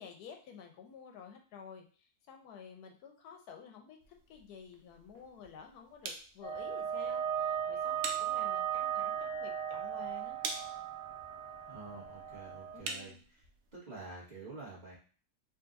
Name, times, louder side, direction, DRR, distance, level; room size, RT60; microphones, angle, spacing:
voice 1, 0.0-10.4 12.7-13.2, left 6 dB, 90° left, 3 dB, 1.2 m, -52 dB
sound 1, 4.0-13.8, right 4 dB, 90° right, 1.1 m, -47 dB
sound 2, 6.4-12.8, right 9 dB, 40° left, 0.4 m, -36 dB
voice 2, 11.6-13.1 13.7-15.0, right 3 dB, 30° right, -7 dB, 1.3 m, -48 dB
3.9 x 2.6 x 2.5 m, 0.40 s
omnidirectional pair, 1.6 m